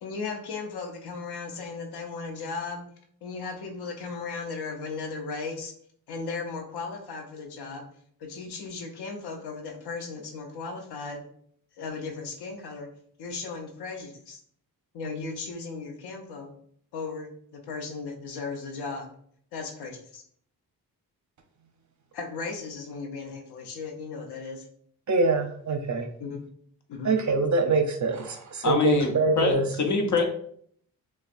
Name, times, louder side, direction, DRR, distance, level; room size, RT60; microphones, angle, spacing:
voice 1, 0.0-2.8 3.2-5.7 6.1-7.9 8.2-11.2 11.8-12.9 13.2-14.4 14.9-16.5 16.9-19.1 19.5-20.2 22.1-24.7 26.2-26.4 26.9-27.1, left 4 dB, 85° left, 3 dB, 0.9 m, -36 dB
voice 2, 25.1-26.1 27.0-29.6, right 4 dB, 50° right, 5 dB, 0.7 m, -24 dB
voice 3, 28.6-30.3, left 5 dB, 50° left, 3 dB, 1.0 m, -24 dB
6.3 x 2.3 x 2.5 m, 0.62 s
cardioid pair, 80°, 38 cm